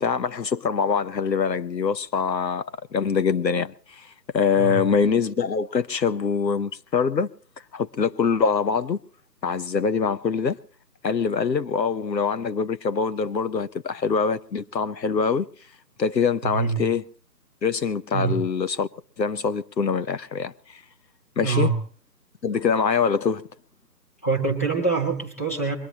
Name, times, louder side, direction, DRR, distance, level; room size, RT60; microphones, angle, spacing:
voice 1, 0.0-4.1 4.3-7.3 7.7-9.0 9.4-10.6 11.0-15.5 16.0-17.0 17.6-18.9 19.2-20.8 21.4-21.7 22.4-23.5, left 6 dB, 85° left, 1.1 m, -24 dB
voice 2, 16.4-16.8 18.1-18.4 21.4-21.8 24.2-25.8, right 5 dB, 10° left, 0.9 m, -25 dB
22.5 x 21.5 x 3.0 m
figure-of-eight pair, 165°, 49 cm